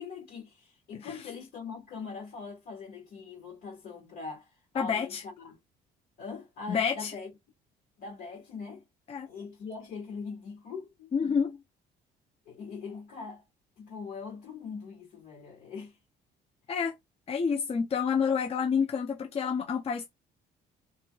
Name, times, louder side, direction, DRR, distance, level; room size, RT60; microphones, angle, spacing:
voice 1, 0.0-5.6 6.2-7.3 8.0-8.8 9.2-11.4 12.4-13.4 13.8-16.0, left 5 dB, 65° left, 1.7 m, -42 dB
voice 2, 4.7-5.2 6.7-7.1 9.1-9.3 11.1-11.6 16.7-16.9 17.3-20.1, left 6 dB, 35° left, 0.7 m, -28 dB
3.5 x 2.7 x 2.4 m
cardioid pair, 110°, 17 cm